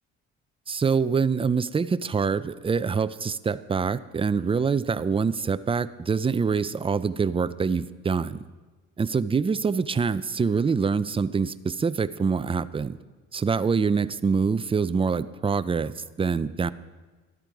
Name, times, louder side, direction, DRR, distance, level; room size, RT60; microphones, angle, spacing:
voice 1, 0.7-8.4 9.0-13.0 13.3-16.7, right 5 dB, 20° right, 15 dB, 0.5 m, -25 dB
13.0 x 12.0 x 4.8 m, 1.3 s
cardioid pair, 90°, 30 cm